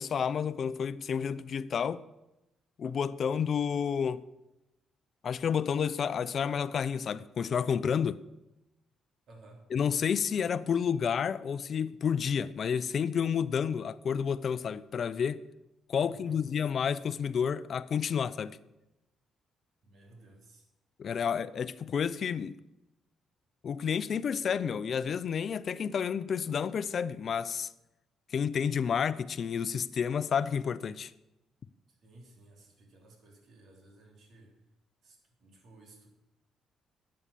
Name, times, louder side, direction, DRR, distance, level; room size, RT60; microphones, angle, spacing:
voice 1, 0.0-2.0 2.8-4.2 5.2-8.2 9.7-15.4 15.9-18.6 21.0-22.6 23.6-27.7 28.3-31.1, left 7 dB, 55° left, 0.6 m, -30 dB
voice 2, 9.3-9.6 16.0-16.4 19.8-20.7 21.1-21.3 32.0-34.5 35.0-36.1, right 2 dB, 65° right, 3.2 m, -56 dB
11.0 x 8.8 x 6.9 m
cardioid pair, 90°, 0 cm